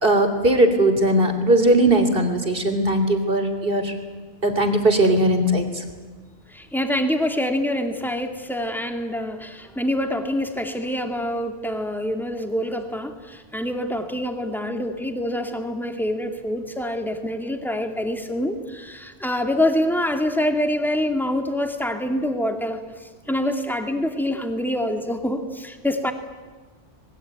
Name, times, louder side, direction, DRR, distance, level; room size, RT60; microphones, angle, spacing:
voice 1, 0.0-3.9 4.4-5.8, right 1 dB, 50° right, 6 dB, 3.3 m, -19 dB
voice 2, 6.5-26.1, left 1 dB, ahead, 5 dB, 2.3 m, -26 dB
26.5 x 21.0 x 9.1 m, 1.4 s
omnidirectional pair, 1.2 m